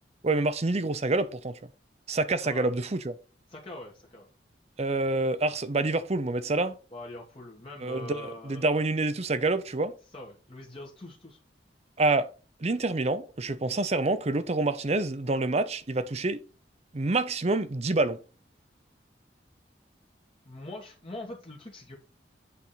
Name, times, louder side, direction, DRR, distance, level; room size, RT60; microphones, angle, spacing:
voice 1, 0.2-1.6 2.1-3.1 4.8-6.8 7.8-9.9 12.0-12.3 12.6-16.4 16.9-18.2, right 2 dB, 35° right, 0.7 m, -27 dB
voice 2, 2.4-2.8 3.5-4.3 6.9-8.8 10.1-11.4 20.5-22.0, left 1 dB, 30° left, 1.4 m, -43 dB
8.4 x 3.6 x 5.7 m
head